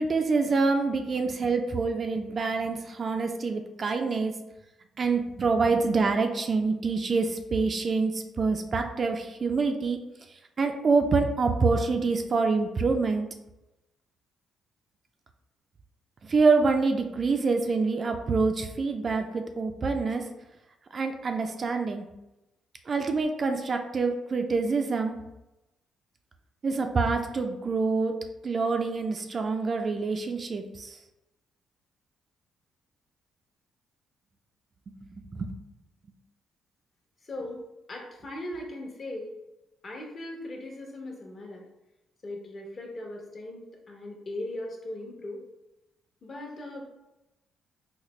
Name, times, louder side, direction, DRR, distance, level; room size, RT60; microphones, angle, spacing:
voice 1, 0.0-4.4 5.0-10.0 10.6-13.3 16.2-20.2 20.9-22.1 22.9-25.2 26.6-28.1 28.4-31.0 35.2-35.6, right 4 dB, 40° right, 5 dB, 0.3 m, -26 dB
voice 2, 37.2-39.3 39.8-41.7 42.2-45.4 46.2-46.8, left 1 dB, 40° left, 0 dB, 0.9 m, -39 dB
4.0 x 2.1 x 3.1 m, 0.94 s
cardioid pair, 90°, 0 cm